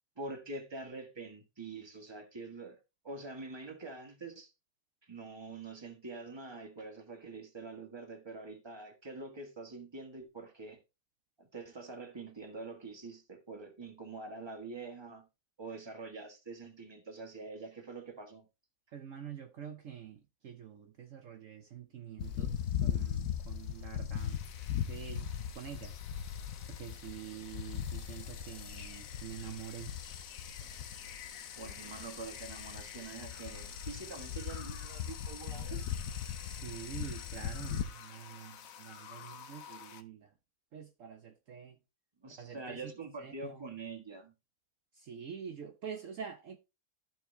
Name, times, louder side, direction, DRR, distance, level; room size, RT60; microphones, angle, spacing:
voice 1, 0.2-2.8 3.0-4.5 5.0-10.8 11.4-15.3 15.6-18.5 31.5-35.9 42.2-44.3, right 3 dB, 20° right, 1.4 m, -45 dB
voice 2, 18.9-24.4 24.9-25.9 26.6-29.9 36.4-40.3 40.7-41.8 42.4-42.9 43.2-43.7 44.9-46.6, right 8 dB, 60° right, 1.0 m, -46 dB
sound 1, 22.2-37.8, left 9 dB, 85° left, 1.3 m, -39 dB
sound 2, 24.1-40.0, left 8 dB, 65° left, 1.2 m, -52 dB
13.5 x 4.6 x 3.1 m
omnidirectional pair, 1.6 m